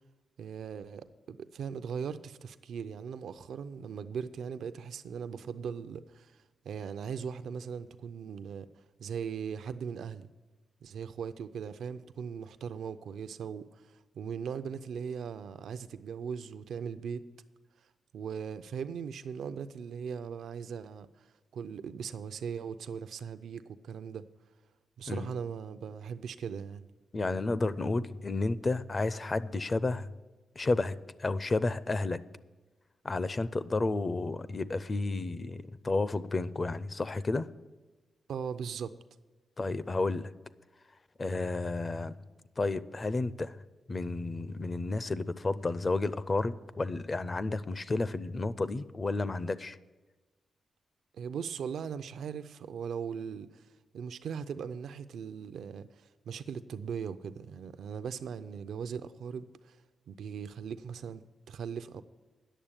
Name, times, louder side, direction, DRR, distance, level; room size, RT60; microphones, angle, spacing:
voice 1, 0.4-6.3 6.6-8.7 9.0-10.3 10.8-13.8 14.1-17.3 18.1-21.1 21.5-24.3 25.0-26.9 38.3-38.9 51.1-53.6 53.9-59.8 60.1-62.0, right 7 dB, 85° right, 0.5 m, -39 dB
voice 2, 27.1-30.2 30.6-32.2 33.0-37.5 39.6-40.3 41.2-42.2 42.6-43.6 43.9-49.8, left 3 dB, 30° left, 0.4 m, -31 dB
10.0 x 7.0 x 8.9 m
cardioid pair, 110°, 0 cm